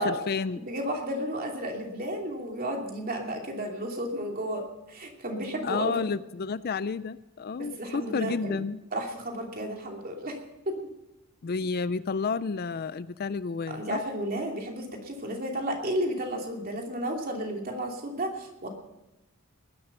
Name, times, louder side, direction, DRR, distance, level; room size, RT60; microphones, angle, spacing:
voice 1, 0.0-0.6 5.6-8.8 11.4-14.0, left 5 dB, 45° left, 16 dB, 0.4 m, -31 dB
voice 2, 0.6-6.0 7.6-8.6 8.9-10.4 10.7-10.8 13.7-18.7, right 1 dB, 40° right, 2 dB, 2.8 m, -32 dB
20.0 x 11.0 x 5.5 m, 0.98 s
head